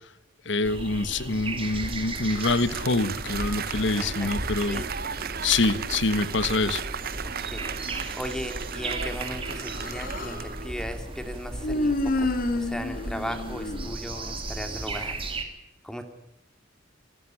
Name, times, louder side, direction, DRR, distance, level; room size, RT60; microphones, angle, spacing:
voice 1, 0.4-4.8 5.4-6.8, left 3 dB, 65° left, 14 dB, 1.4 m, -25 dB
sound 1, 0.6-15.4, right 2 dB, 30° right, 3.0 m, -36 dB
Applause, 1.6-11.2, right 7 dB, 50° right, 1.1 m, -36 dB
voice 2, 4.0-4.3 4.7-4.9 7.2-7.8 8.1-12.3 12.6-15.2 15.8-16.0, equal, 5° left, 7 dB, 2.5 m, -37 dB
Human voice, 9.5-10.5 11.6-14.4, left 2 dB, 50° left, 2.6 m, -29 dB
27.0 x 14.0 x 9.8 m, 0.82 s
head